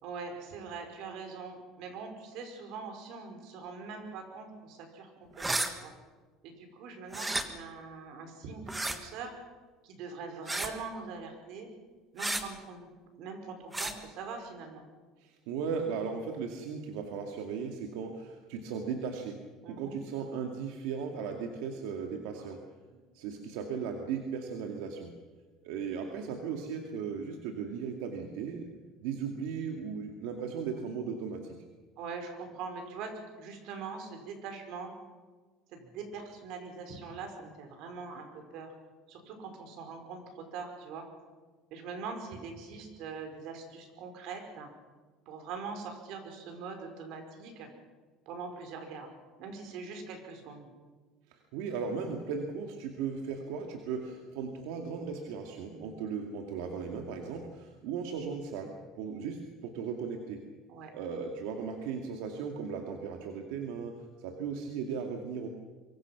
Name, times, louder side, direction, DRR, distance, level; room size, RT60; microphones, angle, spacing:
voice 1, 0.0-5.9 6.4-9.3 9.8-11.7 12.1-12.9 13.2-14.9 19.6-20.0 22.4-22.6 22.9-23.0 32.0-34.9 35.7-38.7 39.1-41.1 41.7-44.7 45.3-47.7 48.3-49.1 49.4-50.7 55.7-56.0 60.7-60.9, right 4 dB, 60° right, 4 dB, 5.3 m, -42 dB
sound 1, 5.4-5.7 7.1-7.4 8.7-9.0 10.5-10.8 12.2-12.4 13.7-13.9, right 2 dB, 10° right, 1.5 m, -32 dB
voice 2, 15.2-19.4 19.7-22.6 23.1-25.1 25.6-28.7 29.0-31.6 51.3-60.4 60.9-65.5, right 6 dB, 85° right, 3 dB, 2.3 m, -37 dB
24.5 x 24.0 x 6.1 m, 1.4 s
cardioid pair, 165°, 0 cm